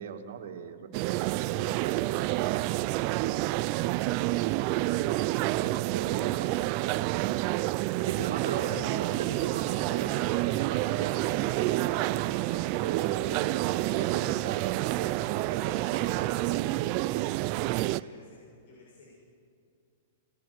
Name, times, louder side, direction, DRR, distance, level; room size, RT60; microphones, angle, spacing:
voice 1, 0.0-2.7 3.5-4.2 5.5-7.4 7.8-12.0 12.5-17.2, right 7 dB, 70° right, 4 dB, 2.4 m, -39 dB
sound 1, 0.9-18.0, right 18 dB, 40° right, 0.5 m, -29 dB
sound 2, 1.5-16.3, equal, 25° left, 5.0 m, -59 dB
sound 3, 8.0-16.6, right 1 dB, 5° left, 2.7 m, -50 dB
voice 2, 17.7-19.3, left 3 dB, 55° left, -4 dB, 7.1 m, -54 dB
26.5 x 20.5 x 6.2 m, 2.5 s
hypercardioid pair, 145°, 0 cm